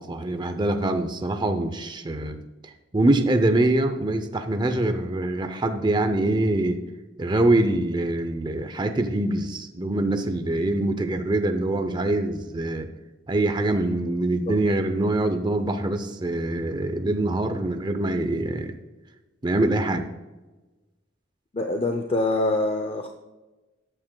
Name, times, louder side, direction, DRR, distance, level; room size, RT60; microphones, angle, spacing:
voice 1, 0.0-2.4 2.6-6.8 7.2-12.9 13.3-18.8 19.4-20.0, right 2 dB, 25° right, 8 dB, 0.6 m, -24 dB
voice 2, 21.5-23.1, left 2 dB, 30° left, 4 dB, 0.5 m, -24 dB
14.0 x 8.8 x 2.2 m, 1.1 s
head